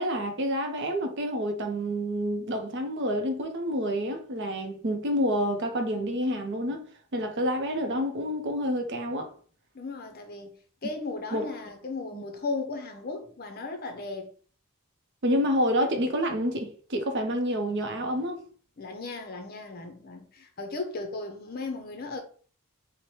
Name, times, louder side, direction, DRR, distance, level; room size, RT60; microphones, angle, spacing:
voice 1, 0.0-6.8 7.1-9.3 11.3-11.5 12.1-12.2 15.2-18.4, equal, 50° right, 0.6 m, -28 dB
voice 2, 9.7-10.5 10.8-14.3 18.8-22.2, left 3 dB, 40° left, 0.6 m, -36 dB
3.1 x 2.1 x 4.1 m
head